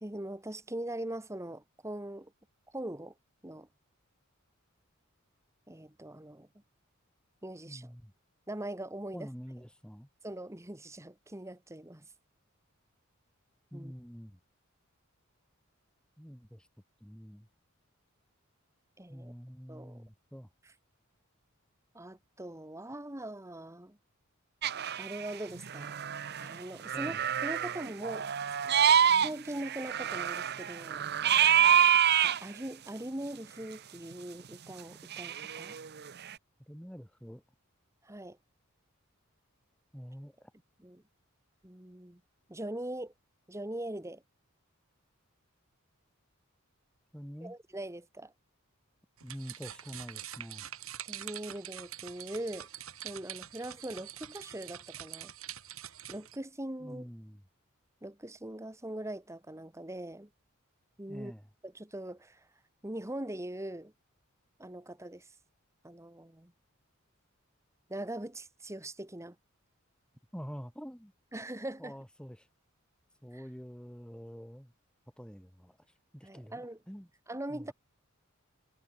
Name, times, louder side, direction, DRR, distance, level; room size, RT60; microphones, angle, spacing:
voice 1, 0.0-2.3 2.7-3.1 3.4-3.7 5.7-6.5 7.4-7.9 8.5-9.3 10.2-12.1 13.7-13.9 19.0-19.3 19.7-20.0 20.6-20.7 21.9-24.0 25.0-26.0 26.4-28.3 28.9-31.1 32.2-35.8 38.0-38.4 40.8-41.0 41.6-42.2 42.5-43.1 43.5-44.2 47.4-48.3 51.0-52.7 53.0-55.3 56.1-57.1 58.0-60.3 61.0-61.3 61.6-62.5 62.8-63.9 64.6-65.3 65.8-66.5 67.9-69.4 71.3-71.9 73.3-73.4 76.2-76.8 77.3-77.7, right 1 dB, 15° right, 1.6 m, -41 dB
voice 2, 7.6-8.1 9.1-10.1 13.7-14.4 16.2-16.7 17.0-17.5 19.1-20.5 26.9-27.2 36.7-37.4 39.9-40.5 47.1-47.5 49.2-50.7 56.8-57.4 61.1-61.4 70.3-71.1 71.8-72.5 73.2-74.7 75.2-75.8 76.1-77.1 77.5-77.7, equal, 5° left, 4.8 m, -46 dB
sound 1, 24.6-25.3 25.6-26.6 26.8-29.3 29.6-32.4 35.1-36.3, right 9 dB, 50° right, 0.8 m, -27 dB
sound 2, 49.2-56.4, right 11 dB, 80° right, 5.1 m, -45 dB
head